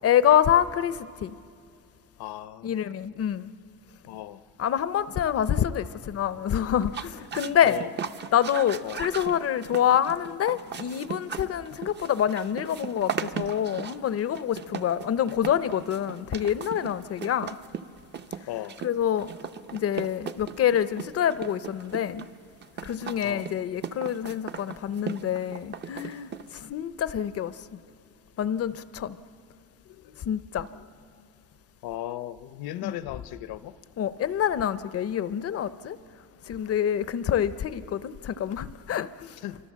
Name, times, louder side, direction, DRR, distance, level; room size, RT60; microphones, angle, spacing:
voice 1, 0.0-1.3 2.6-3.5 4.6-7.8 8.3-17.6 18.8-19.3 19.7-22.3 22.8-27.8 28.4-29.2 30.3-30.7 32.8-32.9 34.0-36.0 36.5-39.4, left 9 dB, 40° left, 0.5 m, -26 dB
voice 2, 2.2-2.8 4.1-4.4 7.6-8.0 8.8-9.1 18.5-18.8 23.2-23.5 29.8-30.2 30.7-30.9 31.8-33.7 39.4-39.6, left 13 dB, 80° left, 0.8 m, -37 dB
sound 1, 6.8-26.7, right 7 dB, 30° right, 0.5 m, -38 dB
28.5 x 25.0 x 7.4 m
cardioid pair, 165°, 37 cm